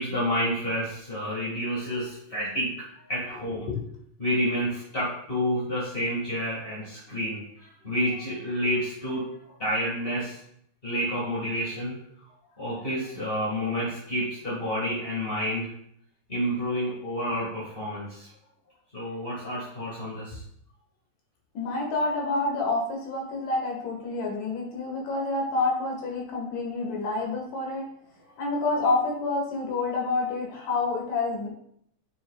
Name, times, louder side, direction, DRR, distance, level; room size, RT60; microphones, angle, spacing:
voice 1, 0.0-2.7 3.1-3.7 4.2-9.2 9.6-10.4 10.8-12.0 12.6-15.7 16.3-18.3 18.9-20.4, equal, 25° left, -8 dB, 1.6 m, -29 dB
voice 2, 21.5-27.8 28.4-31.5, left 3 dB, 80° left, -1 dB, 3.3 m, -28 dB
8.9 x 6.4 x 2.4 m, 0.69 s
omnidirectional pair, 3.7 m